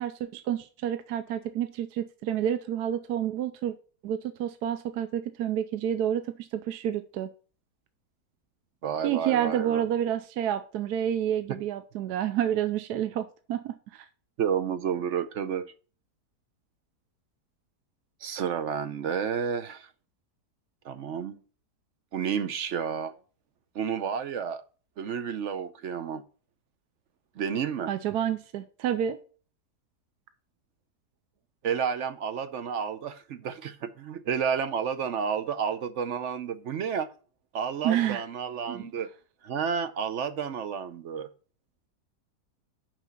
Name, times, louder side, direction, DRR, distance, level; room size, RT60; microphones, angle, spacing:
voice 1, 0.0-3.7 4.0-7.3 9.0-14.1 27.9-29.2 37.8-38.2 38.7-38.9, right 10 dB, 75° right, 1.1 m, -29 dB
voice 2, 8.8-9.9 14.4-15.7 18.2-19.9 20.8-21.4 22.1-23.1 23.7-24.6 25.0-26.2 27.4-27.9 31.6-37.1 37.5-39.1 39.4-41.3, right 7 dB, 60° right, 0.8 m, -31 dB
6.1 x 5.7 x 7.0 m
omnidirectional pair, 1.8 m